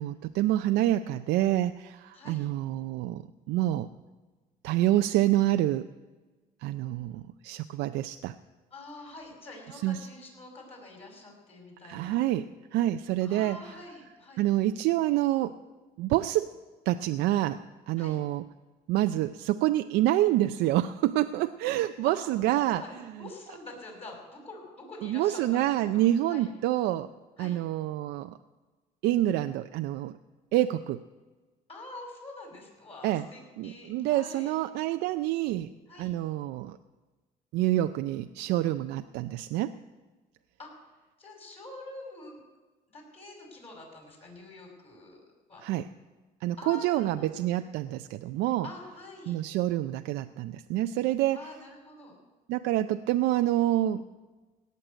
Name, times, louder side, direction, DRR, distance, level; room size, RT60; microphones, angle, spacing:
voice 1, 0.0-3.2 3.5-3.9 4.6-5.9 6.6-8.3 9.7-10.1 11.8-13.6 14.4-15.6 16.0-16.5 16.9-18.4 18.9-23.1 25.0-27.1 27.4-28.4 29.0-30.2 30.5-31.0 33.0-33.3 33.6-35.7 36.0-36.8 37.5-39.7 45.6-45.9 46.4-48.7 49.3-51.5 52.5-54.0, right 14 dB, 85° right, 9 dB, 0.5 m, -27 dB
voice 2, 2.1-2.5 8.7-12.2 13.2-14.5 18.0-18.2 22.1-22.2 22.6-26.0 26.3-26.5 27.4-27.6 31.7-34.5 35.9-36.1 40.6-40.8 41.2-42.4 42.9-45.2 45.5-45.6 46.6-47.4 48.6-49.4 51.3-52.2, left 2 dB, 35° left, 1 dB, 5.5 m, -46 dB
17.5 x 6.6 x 9.1 m, 1.3 s
cardioid pair, 110°, 17 cm